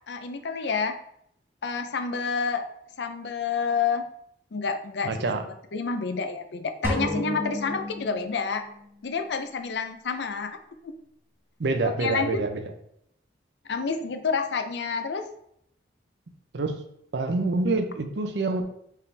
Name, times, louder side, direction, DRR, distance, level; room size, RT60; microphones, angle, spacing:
voice 1, 0.1-0.9 1.6-2.7 3.0-4.1 4.5-5.1 5.7-8.6 9.0-10.6 11.8-12.4 13.7-15.2, left 5 dB, 70° left, 8 dB, 0.5 m, -29 dB
voice 2, 5.0-5.4 11.6-12.7 16.5-16.8 17.1-18.6, right 3 dB, 70° right, 6 dB, 0.6 m, -26 dB
sound 1, 6.8-8.9, left 1 dB, 10° right, 0.9 m, -31 dB
4.7 x 3.5 x 3.3 m, 0.72 s
head